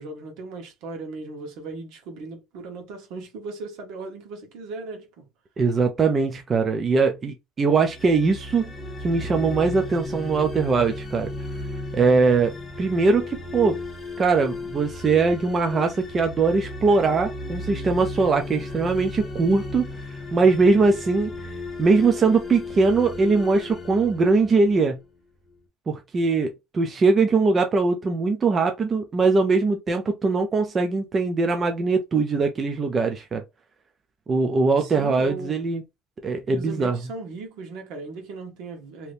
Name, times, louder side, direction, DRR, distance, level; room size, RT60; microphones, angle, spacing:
voice 1, 0.0-5.2 34.8-35.7 36.5-39.1, right 3 dB, 60° right, 1.2 m, -37 dB
voice 2, 5.6-8.7 9.0-11.3 11.9-13.8 14.2-19.9 20.3-21.5 21.8-25.0 25.9-33.4 34.3-35.8 36.2-37.0, right 4 dB, 20° right, 0.4 m, -21 dB
sound 1, 7.8-24.9, left 2 dB, 15° left, 0.9 m, -35 dB
3.3 x 2.8 x 2.6 m
cardioid pair, 170°, 0 cm